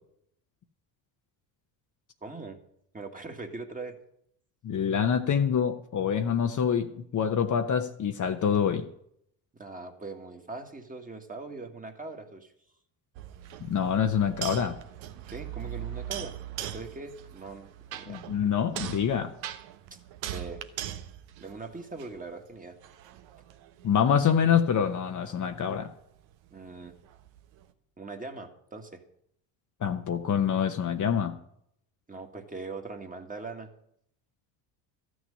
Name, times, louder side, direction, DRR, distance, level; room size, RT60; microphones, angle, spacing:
voice 1, 2.2-2.6 2.9-3.9 9.5-12.5 15.3-18.2 19.9-20.0 20.3-20.7 21.4-22.8 26.5-26.9 28.0-29.0 32.1-33.7, right 3 dB, 15° right, 4 dB, 1.8 m, -41 dB
voice 2, 4.6-8.8 13.7-14.8 18.1-19.3 23.8-25.9 29.8-31.4, left 7 dB, 35° left, 6 dB, 1.0 m, -26 dB
sound 1, 13.1-22.3 22.8-27.7, right 11 dB, 65° right, 1.2 m, -41 dB
13.0 x 6.3 x 9.8 m, 0.73 s
supercardioid pair, 80°, 50 cm